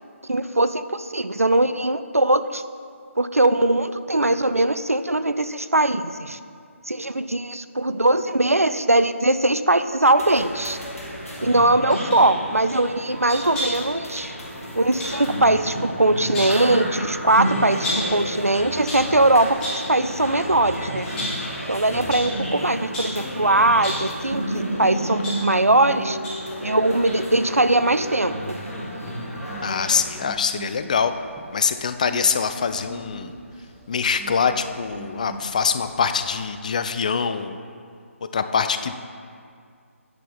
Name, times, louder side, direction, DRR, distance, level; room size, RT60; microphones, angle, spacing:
voice 1, 0.2-2.6 3.2-6.4 6.9-10.8 11.4-14.4 14.8-21.1 21.7-26.2 26.6-28.6, right 2 dB, 90° right, 11 dB, 0.4 m, -21 dB
sound 1, 10.2-30.0, equal, 80° left, 2.0 m, -31 dB
sound 2, 11.9-12.2 13.3-13.9 15.0-15.2 16.1-16.7 17.8-18.2 18.7-19.1 19.6-19.9 20.4-20.6 21.1-21.5 22.1-22.3 22.9-23.2 23.7-24.1 24.8-25.9 26.2-26.5 26.8-26.9, left 1 dB, 10° left, 2.0 m, -31 dB
voice 2, 21.9-22.3 29.6-31.1 31.5-33.3 33.9-37.6 38.2-39.0, left 6 dB, 30° left, 10 dB, 0.3 m, -24 dB
sound 3, 29.5-36.6, right 3 dB, 10° right, 0.7 m, -43 dB
9.6 x 4.6 x 5.6 m, 2.3 s
figure-of-eight pair, 150°, 8 cm